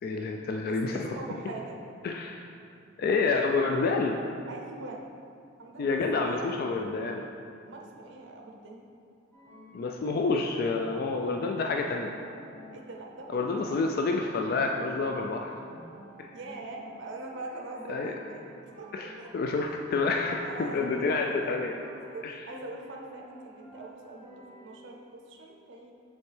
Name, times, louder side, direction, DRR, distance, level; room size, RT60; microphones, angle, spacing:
voice 1, 0.0-1.1 2.0-2.5 3.0-4.2 5.8-7.3 9.7-12.1 13.3-15.5 16.2-16.3 17.9-18.1 18.9-21.8 22.2-22.4, left 3 dB, 50° left, 2 dB, 0.3 m, -28 dB
voice 2, 0.7-1.8 4.5-5.0 5.6-6.6 7.6-8.9 12.7-13.8 16.3-19.3 20.2-21.6 22.1-25.9, right 2 dB, 65° right, 0 dB, 0.6 m, -43 dB
sound 1, 9.3-24.9, equal, 10° left, 1.3 m, -51 dB
7.0 x 4.3 x 3.3 m, 2.5 s
head